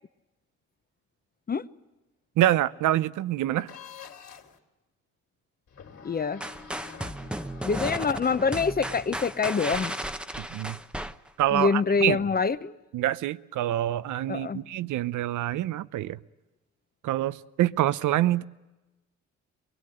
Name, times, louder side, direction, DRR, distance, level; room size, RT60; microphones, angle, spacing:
voice 1, 2.4-3.7 10.4-10.8 11.4-12.2 12.9-16.2 17.0-18.4, right 13 dB, 80° right, 0.8 m, -26 dB
sound 1, 3.7-4.6 5.7-8.8, left 6 dB, 55° left, 3.3 m, -48 dB
voice 2, 6.0-6.4 7.6-10.0 11.5-12.8 14.3-14.6, left 5 dB, 30° left, 0.9 m, -25 dB
sound 2, 6.4-11.7, right 1 dB, 5° right, 0.9 m, -35 dB
23.5 x 21.5 x 7.9 m
cardioid pair, 90°, 30 cm